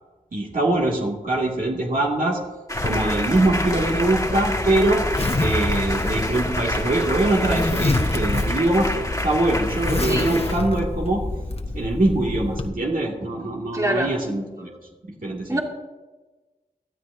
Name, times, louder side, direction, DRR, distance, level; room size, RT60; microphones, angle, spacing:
voice 1, 0.3-2.4 2.8-5.1 5.4-11.2 11.7-14.7 15.2-15.6, right 2 dB, 65° right, -2 dB, 2.3 m, -23 dB
sound 1, 2.7-10.5, left 1 dB, 20° left, 1.7 m, -29 dB
Zipper (clothing), 2.8-12.7, left 2 dB, 45° left, 1.1 m, -27 dB
voice 2, 13.7-14.1 15.5-15.6, right 1 dB, 20° right, -1 dB, 2.5 m, -24 dB
19.5 x 12.5 x 2.8 m, 1.2 s
cardioid pair, 45°, 15 cm